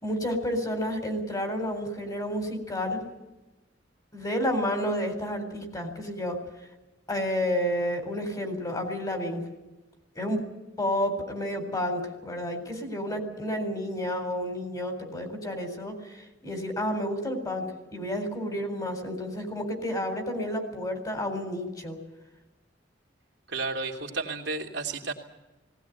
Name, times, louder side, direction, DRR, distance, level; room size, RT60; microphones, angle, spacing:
voice 1, 0.0-3.1 4.1-6.4 7.1-9.5 10.2-10.4 10.8-22.0, equal, 20° left, 5 dB, 3.9 m, -30 dB
voice 2, 23.5-25.1, right 3 dB, 70° right, 2 dB, 2.8 m, -32 dB
19.0 x 18.5 x 9.3 m, 1.0 s
head